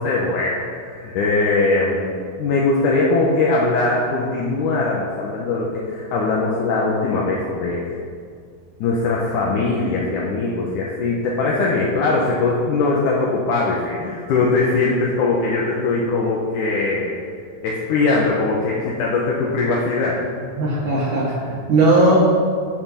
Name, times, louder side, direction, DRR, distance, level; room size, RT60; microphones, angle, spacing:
voice 1, 0.0-8.0 8.8-17.3 17.6-20.2, left 3 dB, 80° left, -4 dB, 2.5 m, -21 dB
voice 2, 20.6-22.2, right 2 dB, 65° right, -7 dB, 2.9 m, -17 dB
14.5 x 5.1 x 5.6 m, 2.2 s
omnidirectional pair, 3.7 m